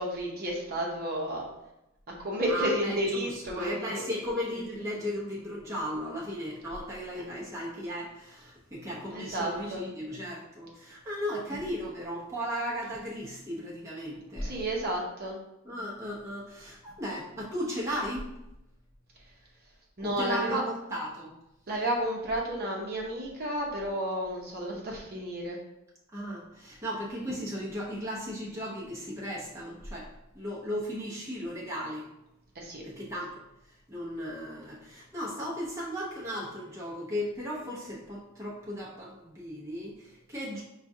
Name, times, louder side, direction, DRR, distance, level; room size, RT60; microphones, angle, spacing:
voice 1, 0.0-1.5 2.2-4.0 7.1-7.3 9.1-9.8 14.4-15.4 20.0-20.6 21.7-25.6 32.5-32.8, right 1 dB, 45° right, -2 dB, 0.9 m, -31 dB
voice 2, 2.4-14.5 15.6-18.3 20.0-21.3 26.1-32.1 32.8-33.4 33.9-40.6, equal, 15° right, -6 dB, 0.8 m, -36 dB
5.9 x 2.4 x 2.7 m, 0.88 s
head